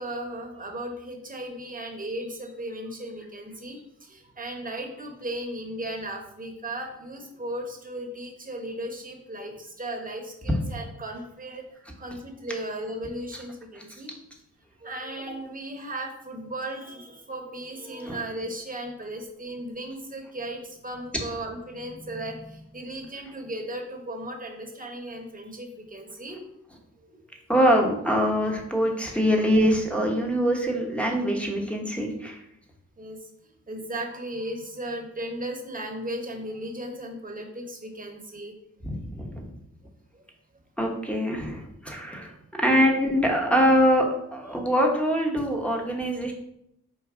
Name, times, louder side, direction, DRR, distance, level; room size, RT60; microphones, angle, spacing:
voice 1, 0.0-14.1 14.8-26.4 27.0-27.2 27.7-27.8 33.0-33.2 33.7-38.5 40.1-40.2, right 1 dB, 25° right, 1 dB, 1.2 m, -36 dB
voice 2, 27.5-32.4 38.8-39.5 40.8-44.0 44.3-46.3, equal, 5° left, 1 dB, 1.1 m, -24 dB
4.7 x 2.5 x 3.8 m, 0.77 s
supercardioid pair, 45°, 36 cm